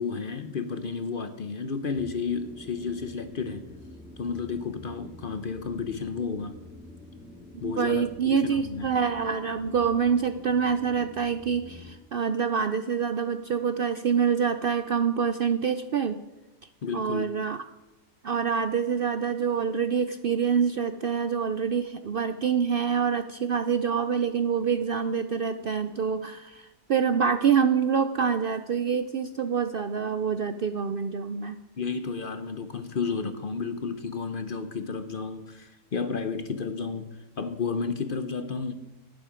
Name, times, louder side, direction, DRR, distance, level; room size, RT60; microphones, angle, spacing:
voice 1, 0.0-3.7 4.2-6.6 7.6-8.9 16.8-17.3 31.8-38.7, left 5 dB, 50° left, 0.8 m, -32 dB
sound 1, 1.9-12.0, left 2 dB, 5° right, 0.9 m, -47 dB
voice 2, 7.6-16.2 16.9-17.6 18.2-31.6, right 6 dB, 60° right, 0.6 m, -26 dB
11.5 x 10.5 x 5.0 m
omnidirectional pair, 1.4 m